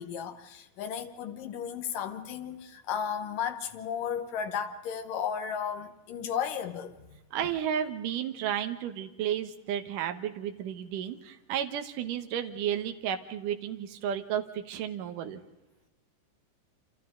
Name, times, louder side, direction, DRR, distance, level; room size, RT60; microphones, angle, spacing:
voice 1, 0.0-7.5, left 8 dB, 90° left, 3.0 m, -34 dB
voice 2, 7.3-15.4, right 9 dB, 80° right, 2.7 m, -32 dB
28.5 x 27.5 x 3.8 m
omnidirectional pair, 3.7 m